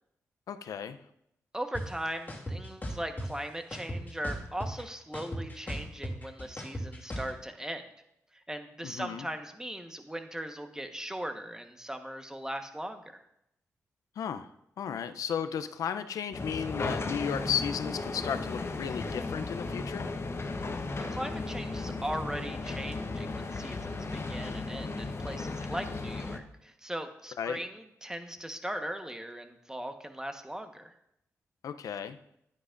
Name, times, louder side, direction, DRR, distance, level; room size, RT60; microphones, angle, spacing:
voice 1, 0.5-1.0 8.8-9.3 14.2-14.5 14.8-20.1 27.4-27.6 31.6-32.2, left 8 dB, 85° left, 10 dB, 0.5 m, -34 dB
voice 2, 1.5-7.8 8.3-13.2 21.1-30.9, right 1 dB, 10° right, 6 dB, 1.1 m, -39 dB
sound 1, 1.7-1.8 2.3-3.3 3.7-4.8 5.1-7.3, equal, 30° left, 2.5 m, -36 dB
sound 2, 16.3-26.4, left 3 dB, 45° left, 0.9 m, -35 dB
10.5 x 9.5 x 2.5 m, 0.79 s
cardioid pair, 50°, 6 cm